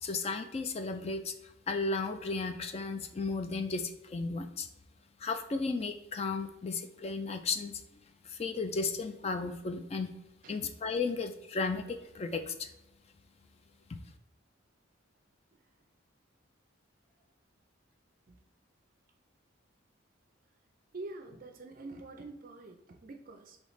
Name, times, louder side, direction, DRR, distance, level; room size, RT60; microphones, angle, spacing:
voice 1, 0.0-4.7 5.2-7.7 8.2-10.1 10.5-12.7 13.9-14.0, left 4 dB, 30° left, 7 dB, 0.3 m, -34 dB
voice 2, 20.9-23.6, right 2 dB, 45° right, 4 dB, 0.4 m, -46 dB
5.5 x 3.1 x 3.1 m, 0.91 s
head